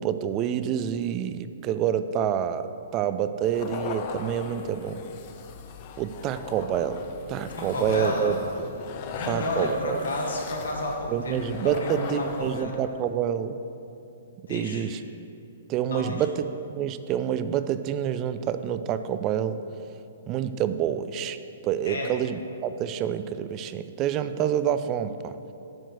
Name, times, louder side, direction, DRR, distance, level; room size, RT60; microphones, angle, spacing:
voice 1, 0.0-5.0 6.0-7.0 7.3-8.4 9.3-10.0 11.1-13.6 14.5-15.0 15.7-19.6 20.3-21.4 21.6-25.4, right 9 dB, 30° right, 11 dB, 0.4 m, -27 dB
sound 1, 3.4-12.8, left 6 dB, 40° left, 0.7 m, -39 dB
voice 2, 7.5-8.4 9.1-12.8 14.5-14.8 15.9-16.2 21.8-22.1, left 1 dB, 70° left, -1 dB, 1.7 m, -31 dB
10.5 x 4.6 x 6.3 m, 2.8 s
figure-of-eight pair, 120°, 0 cm